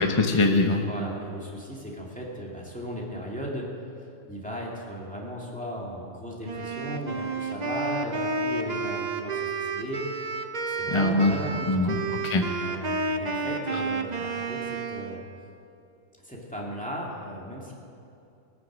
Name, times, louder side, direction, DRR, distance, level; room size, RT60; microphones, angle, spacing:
voice 1, 0.0-0.9 10.9-11.3 11.7-12.5 13.7-13.8, left 2 dB, 25° left, 3 dB, 0.8 m, -23 dB
voice 2, 0.8-3.7 4.3-10.3 10.7-12.0 12.6-15.2 16.2-17.7, equal, 5° left, -4 dB, 2.5 m, -36 dB
Wind instrument woodwind instrument, 6.4-15.2, right 3 dB, 40° right, 0.9 m, -31 dB
19.5 x 9.8 x 6.2 m, 2.6 s
omnidirectional pair, 1.3 m